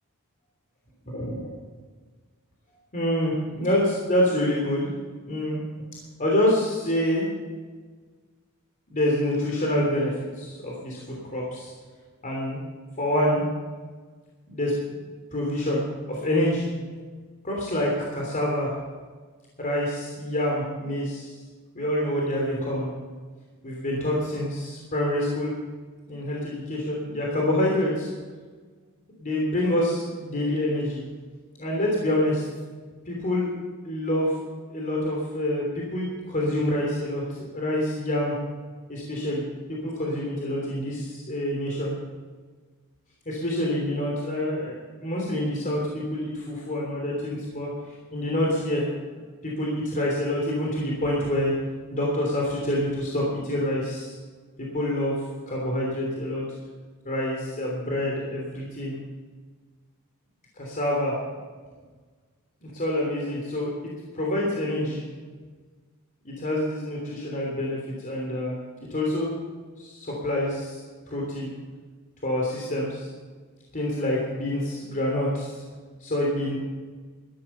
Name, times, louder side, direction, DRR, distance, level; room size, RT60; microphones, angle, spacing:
voice 1, 1.1-1.4 2.9-4.9 5.2-5.6 6.2-7.2 8.9-11.7 12.2-12.6 13.0-13.4 14.5-14.7 15.3-16.7 17.4-18.7 19.6-21.3 21.7-22.9 23.6-25.5 26.1-28.1 29.2-31.0 31.6-32.4 33.1-33.5 33.8-34.3 34.7-37.2 37.5-38.3 38.9-39.5 39.8-41.9 43.2-48.9 49.4-51.5 51.9-54.1 54.7-55.2 55.5-56.4 57.0-59.0 60.6-61.2 62.6-63.7 64.1-65.0 66.2-68.5 68.9-69.3 69.8-70.8 71.1-71.5 72.2-73.1 73.7-75.6 76.0-76.6, left 1 dB, 40° left, -2 dB, 3.1 m, -26 dB
13.0 x 13.0 x 5.5 m, 1.4 s
head